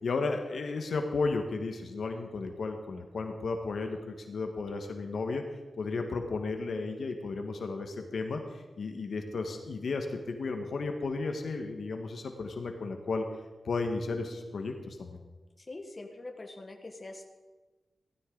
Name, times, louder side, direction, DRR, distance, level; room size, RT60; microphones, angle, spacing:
voice 1, 0.0-5.4 5.8-13.2 13.6-15.2, left 3 dB, 75° left, 5 dB, 1.4 m, -34 dB
voice 2, 15.6-17.2, left 2 dB, 30° left, 3 dB, 1.6 m, -44 dB
16.0 x 13.5 x 3.9 m, 1.2 s
wide cardioid pair, 105°, 0 cm